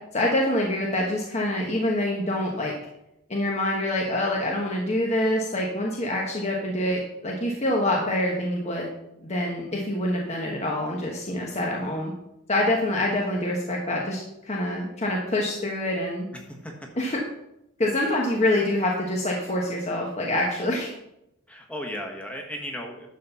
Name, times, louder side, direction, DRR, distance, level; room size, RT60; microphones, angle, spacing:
voice 1, 0.1-2.7 3.3-8.9 9.2-12.1 12.5-16.3 16.9-17.2 17.8-20.9, left 1 dB, 30° left, -2 dB, 1.2 m, -26 dB
voice 2, 16.5-16.9 18.0-18.1 21.5-23.1, left 1 dB, 5° left, 0 dB, 1.4 m, -36 dB
11.5 x 4.2 x 7.0 m, 0.84 s
head